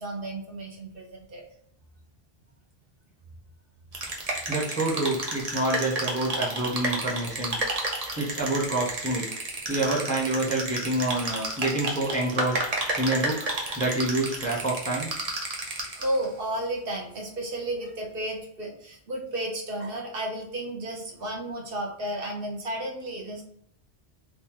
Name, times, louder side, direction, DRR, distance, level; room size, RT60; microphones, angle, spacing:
voice 1, 0.0-1.4 15.7-23.4, right 1 dB, 60° right, 0 dB, 1.0 m, -33 dB
sound 1, 3.9-16.2, right 2 dB, 40° right, 0.7 m, -32 dB
voice 2, 4.5-7.6 8.2-9.3 9.7-12.6 13.0-13.5 13.7-15.1, right 2 dB, 10° left, -4 dB, 0.7 m, -27 dB
3.0 x 2.6 x 3.6 m, 0.69 s
omnidirectional pair, 1.1 m